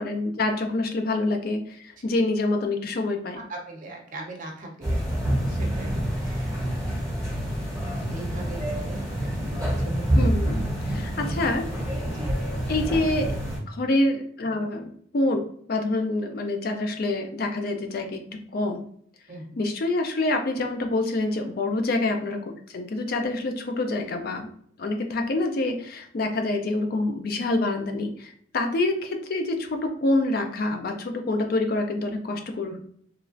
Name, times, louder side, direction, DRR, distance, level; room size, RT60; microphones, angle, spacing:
voice 1, 0.0-3.4 10.1-11.7 12.7-13.4 13.7-15.4 15.7-18.2 18.5-18.9 19.6-22.4 22.7-24.5 24.8-32.8, left 2 dB, 50° left, 5 dB, 0.4 m, -26 dB
voice 2, 3.3-5.1 5.4-6.6 8.1-10.4 11.2-11.5 12.1-12.4 19.3-19.5, right 2 dB, 40° right, 0 dB, 0.6 m, -40 dB
sound 1, 4.8-13.6, equal, 5° left, 1.2 m, -27 dB
3.1 x 2.3 x 2.5 m, 0.63 s
head